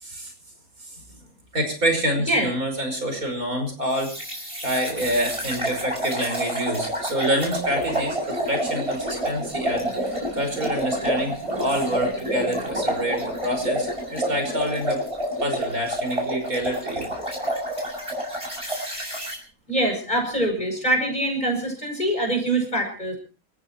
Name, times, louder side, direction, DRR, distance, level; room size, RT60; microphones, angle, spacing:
voice 1, 0.0-0.3 1.5-4.1 4.6-15.0 15.4-17.1, equal, 80° right, 5 dB, 5.8 m, -27 dB
sound 1, 4.0-19.4, equal, 20° right, 6.9 m, -28 dB
voice 2, 19.7-23.2, right 1 dB, 30° left, 3 dB, 6.5 m, -24 dB
28.5 x 14.5 x 3.0 m, 0.36 s
omnidirectional pair, 1.5 m